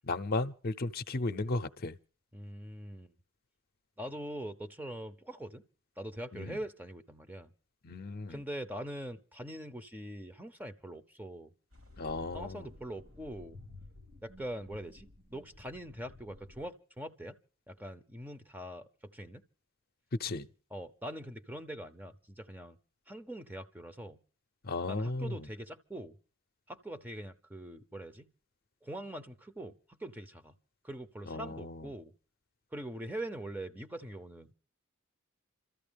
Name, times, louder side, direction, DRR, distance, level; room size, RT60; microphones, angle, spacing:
voice 1, 0.0-2.0 6.3-6.6 7.8-8.4 12.0-12.7 20.2-20.5 24.6-25.5 31.3-31.9, left 3 dB, 45° left, 0.7 m, -35 dB
voice 2, 2.3-3.1 4.0-5.6 6.0-7.5 8.3-11.5 12.3-13.6 14.2-17.4 17.7-19.4 20.7-22.8 23.1-24.2 24.9-26.2 26.7-28.3 28.8-30.6 30.8-32.1 32.7-34.5, right 1 dB, 10° right, 0.7 m, -43 dB
sound 1, 11.7-16.7, left 2 dB, 75° right, 3.8 m, -54 dB
27.0 x 14.0 x 3.4 m
head